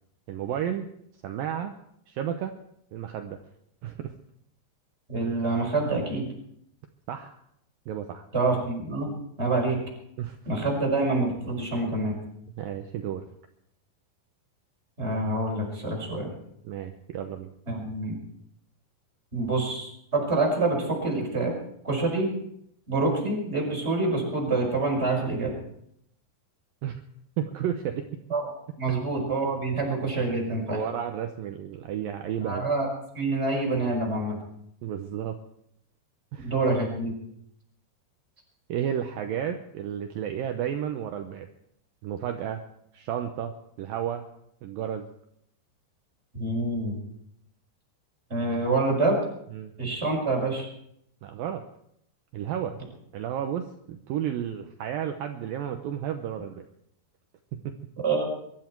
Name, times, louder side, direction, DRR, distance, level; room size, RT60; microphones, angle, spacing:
voice 1, 0.3-0.9 1.2-1.7 2.1-2.5 2.9-3.4 3.8-4.1 7.1-7.4 7.9-8.3 10.2-10.4 12.6-13.3 16.6-17.5 26.8-27.0 27.4-28.1 28.9-29.0 30.7-32.6 34.8-35.4 36.3-36.5 38.7-41.5 42.0-42.6 42.9-44.3 44.6-45.1 49.5-49.7 51.2-51.6 52.3-52.8 53.1-56.7 57.6-57.7, right 9 dB, 75° right, 6 dB, 2.2 m, -32 dB
voice 2, 5.1-6.2 8.3-9.1 9.4-9.8 10.5-12.2 15.0-16.3 17.7-18.2 19.3-21.5 21.8-22.3 22.9-25.5 28.3-28.5 28.8-30.8 32.4-32.9 33.1-34.4 36.4-37.1 46.3-47.0 48.3-49.2 49.8-50.7 58.0-58.2, right 2 dB, 15° right, -1 dB, 5.3 m, -26 dB
23.0 x 13.0 x 4.6 m, 0.73 s
omnidirectional pair, 4.9 m